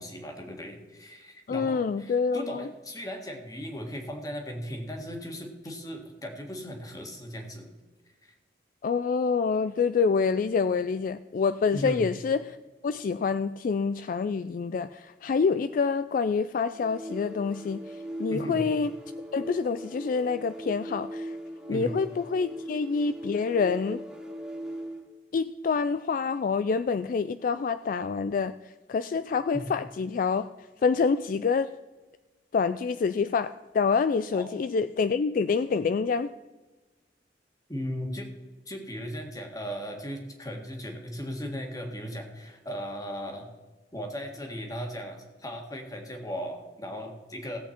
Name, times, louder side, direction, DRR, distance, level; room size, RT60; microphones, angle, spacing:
voice 1, 0.0-7.7 8.2-8.3 11.7-12.0 18.3-18.6 21.7-21.9 29.5-29.7 34.3-34.5 37.7-38.3 38.7-43.5 43.9-47.6, equal, 20° left, 3 dB, 1.8 m, -37 dB
voice 2, 1.5-2.7 8.8-12.6 12.8-17.8 18.2-18.9 19.3-21.4 21.7-24.0 25.3-28.5 28.9-30.5 30.8-31.7 32.5-36.3, left 5 dB, 50° left, 12 dB, 0.3 m, -27 dB
sound 1, 16.7-25.1, right 1 dB, 5° right, 1.8 m, -39 dB
16.5 x 8.1 x 4.4 m, 1.2 s
head